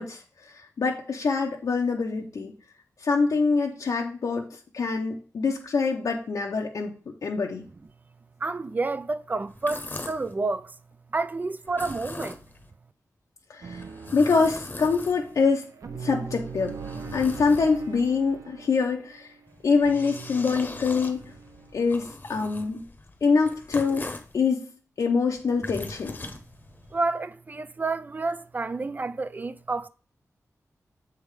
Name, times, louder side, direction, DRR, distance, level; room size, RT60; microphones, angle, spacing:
voice 1, 0.0-2.5 3.0-4.5 4.7-6.9 7.2-7.6 13.5-13.8 14.1-15.7 16.0-16.8 17.1-19.3 19.6-21.2 21.7-22.8 23.2-24.0 24.3-24.7 25.0-26.2, left 4 dB, 75° left, 0.8 m, -25 dB
voice 2, 8.4-10.7 11.1-12.4 26.3-26.4 26.9-29.9, right 3 dB, 30° right, 0.3 m, -29 dB
sound 1, 9.5-10.3 11.6-12.7 13.7-15.5 16.2-18.1 19.5-24.4 25.3-27.0, left 2 dB, 35° left, 0.9 m, -41 dB
sound 2, 13.6-21.8, right 5 dB, 65° right, 0.7 m, -41 dB
7.3 x 3.5 x 4.8 m
wide cardioid pair, 130°, 6 cm